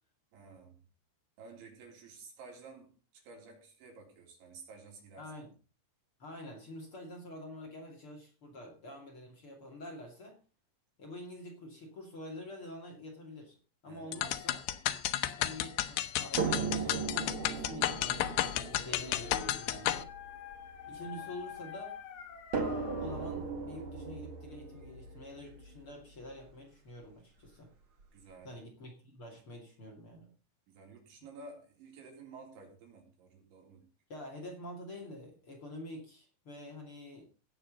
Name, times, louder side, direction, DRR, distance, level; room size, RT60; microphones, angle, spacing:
voice 1, 0.3-0.8 1.4-5.3 13.9-14.3 20.9-21.4 28.1-28.6 30.7-33.9, right 4 dB, 85° right, 1 dB, 6.2 m, -53 dB
voice 2, 5.2-5.5 6.2-10.4 11.0-13.6 13.8-14.6 15.4-20.1 20.8-21.9 23.0-27.7 28.4-30.3 34.1-37.3, left 1 dB, 35° left, 0 dB, 2.8 m, -47 dB
sound 1, 14.1-20.0, left 13 dB, 85° left, 3.2 m, -33 dB
sound 2, 16.4-21.6 22.5-26.5 27.5-27.6 28.0-28.1, right 5 dB, 45° right, 1.8 m, -38 dB
Dog, 18.3-23.4, left 9 dB, 60° left, 3.8 m, -47 dB
17.0 x 7.7 x 5.4 m, 0.36 s
omnidirectional pair, 5.1 m